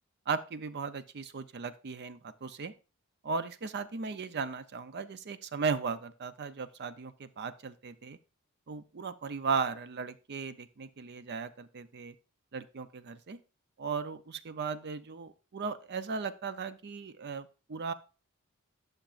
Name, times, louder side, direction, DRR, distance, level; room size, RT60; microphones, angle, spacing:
voice 1, 0.3-2.7 3.2-8.2 8.7-12.1 12.5-13.4 13.8-17.9, right 5 dB, 50° right, 13 dB, 0.5 m, -36 dB
11.5 x 6.5 x 2.5 m, 0.33 s
head